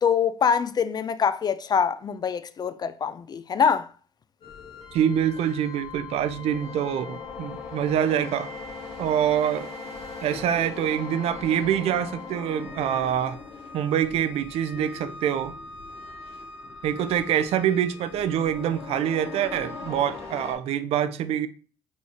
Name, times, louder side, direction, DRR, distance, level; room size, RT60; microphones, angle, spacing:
voice 1, 0.0-3.9, left 7 dB, 35° left, 0.4 m, -24 dB
sound 1, 4.4-20.5, left 4 dB, 55° left, 1.3 m, -39 dB
voice 2, 4.9-8.5 9.0-9.7 10.2-13.4 13.7-15.5 16.8-21.5, right 9 dB, 60° right, 0.4 m, -25 dB
4.1 x 3.5 x 2.9 m
hypercardioid pair, 50°, 12 cm